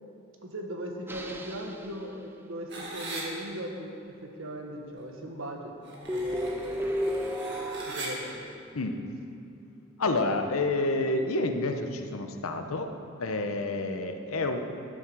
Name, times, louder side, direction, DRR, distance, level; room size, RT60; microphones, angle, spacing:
voice 1, 0.4-5.7 6.1-6.8 7.9-8.4, right 1 dB, 75° right, 2 dB, 1.4 m, -39 dB
sound 1, 1.1-2.4 6.1-8.8, equal, 10° right, 0.4 m, -33 dB
sound 2, 2.7-3.2 5.8-8.1, right 2 dB, 55° right, 2.0 m, -40 dB
voice 2, 10.0-12.9 13.2-14.6, left 2 dB, 90° left, 6 dB, 0.9 m, -29 dB
12.0 x 7.5 x 6.2 m, 2.6 s
head